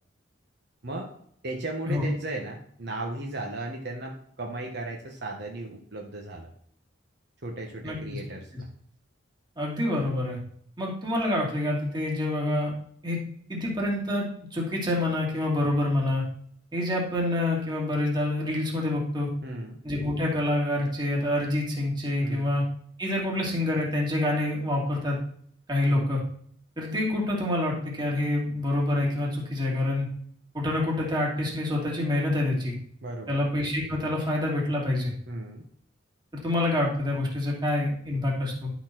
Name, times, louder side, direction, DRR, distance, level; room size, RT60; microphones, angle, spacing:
voice 1, 1.4-6.5 7.4-8.7 19.4-19.8 22.2-22.5 25.8-26.1 33.0-33.4 35.3-35.6, right 2 dB, 60° right, 0 dB, 1.3 m, -36 dB
voice 2, 7.8-8.2 9.6-10.4 10.8-12.7 13.0-13.2 13.5-16.2 16.7-19.3 19.8-22.6 23.0-25.2 25.7-26.2 26.8-30.1 30.5-32.7 33.3-35.1 36.3-38.7, left 1 dB, 25° right, -3 dB, 2.7 m, -27 dB
11.5 x 4.1 x 6.1 m, 0.63 s
head